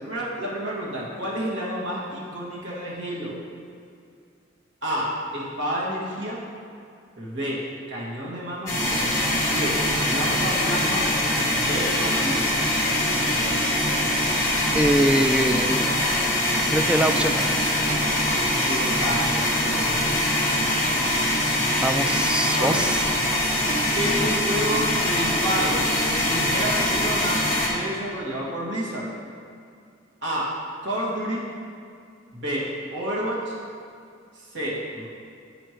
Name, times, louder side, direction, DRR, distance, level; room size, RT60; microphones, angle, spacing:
voice 1, 0.0-3.4 4.8-6.4 7.2-8.8 9.4-11.1 11.4-12.5 15.1-15.7 18.6-20.1 22.5-22.8 23.9-29.1 30.2-30.5 30.8-31.5 32.3-33.5 34.3-35.1, equal, 70° right, -6 dB, 2.2 m, -30 dB
sound 1, 8.7-27.7, left 1 dB, 15° left, 2.1 m, -23 dB
voice 2, 14.7-15.9 16.7-17.5 21.8-23.0, right 1 dB, 5° right, 7 dB, 0.3 m, -23 dB
11.0 x 7.7 x 3.2 m, 2.3 s
head